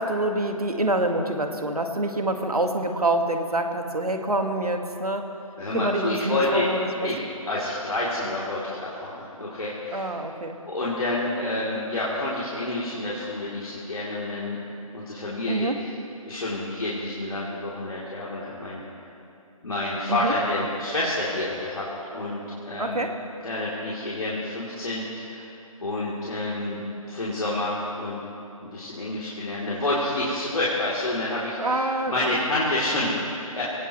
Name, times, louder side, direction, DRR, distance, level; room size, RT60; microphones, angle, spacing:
voice 1, 0.0-5.3 5.7-7.1 9.9-10.6 15.5-15.8 20.1-20.3 22.8-23.2 31.6-32.3, right 2 dB, 90° right, 5 dB, 1.8 m, -26 dB
voice 2, 5.6-6.7 7.0-10.1 10.6-14.7 14.9-15.7 16.3-18.8 19.6-21.9 22.1-22.4 22.6-23.1 23.4-25.5 25.8-28.2 28.6-33.6, left 2 dB, 70° left, -7 dB, 3.2 m, -28 dB
23.5 x 17.5 x 3.2 m, 2.9 s
figure-of-eight pair, 140°, 19 cm